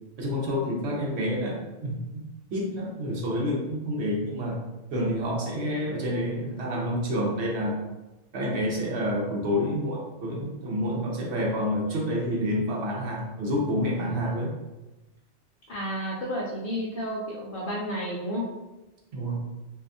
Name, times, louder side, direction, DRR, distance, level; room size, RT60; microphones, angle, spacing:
voice 1, 0.2-2.2 2.5-4.6 4.9-7.8 8.3-14.6 19.1-19.4, equal, 65° right, -2 dB, 0.9 m, -28 dB
voice 2, 15.7-18.5, equal, 55° left, -4 dB, 0.6 m, -31 dB
2.6 x 2.3 x 2.5 m, 1.0 s
omnidirectional pair, 1.2 m